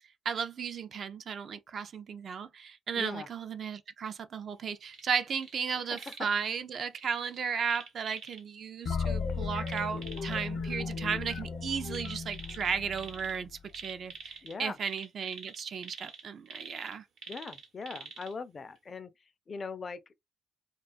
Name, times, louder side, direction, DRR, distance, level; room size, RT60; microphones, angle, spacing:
voice 1, 0.3-17.0, right 6 dB, 55° right, 0.4 m, -35 dB
voice 2, 2.9-3.3 5.7-6.2 14.4-14.8 17.3-20.2, left 4 dB, 40° left, 0.4 m, -41 dB
sound 1, 4.9-5.6 5.9-6.4 7.0-8.4 9.6-10.5 11.9-13.4 13.7-18.3 18.8-18.9, right 5 dB, 75° right, 0.9 m, -46 dB
sound 2, 8.9-13.5, left 5 dB, 65° left, 0.7 m, -35 dB
2.3 x 2.3 x 2.4 m
cardioid pair, 90°, 0 cm